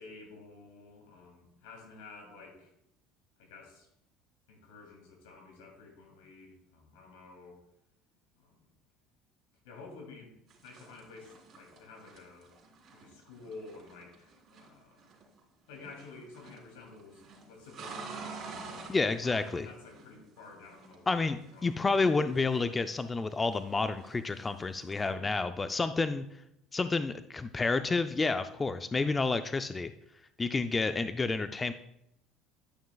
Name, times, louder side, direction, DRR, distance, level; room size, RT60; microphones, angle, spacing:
voice 1, 0.0-2.7 3.4-3.9 4.5-7.6 8.4-8.7 9.6-12.5 12.9-15.1 15.7-18.9 19.2-21.9 25.0-25.4, left 3 dB, 85° left, 1 dB, 2.4 m, -51 dB
sound 1, 10.5-15.4 15.7-16.7 16.9-20.4 20.7-23.1 23.4-25.1, right 4 dB, 45° right, 3.1 m, -49 dB
voice 2, 18.9-19.7 21.1-26.2 26.7-29.9 30.4-31.7, left 3 dB, 20° left, 10 dB, 0.4 m, -30 dB
11.0 x 6.2 x 2.3 m, 0.80 s
supercardioid pair, 100°, 0 cm